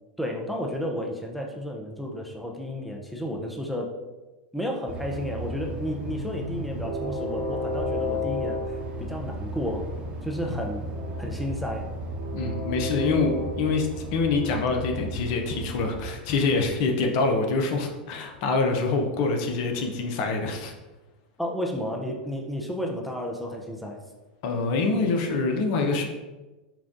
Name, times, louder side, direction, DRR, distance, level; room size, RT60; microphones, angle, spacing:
voice 1, 0.2-3.9 4.5-9.9 10.2-10.8 11.2-11.9 21.4-24.0, equal, ahead, 0 dB, 0.5 m, -32 dB
Train, 4.9-16.1, equal, 30° right, 1.0 m, -33 dB
voice 2, 12.3-13.3 13.6-20.7 24.4-26.1, left 3 dB, 55° left, 4 dB, 0.6 m, -25 dB
5.7 x 2.3 x 2.6 m, 1.1 s
hypercardioid pair, 100°, 5 cm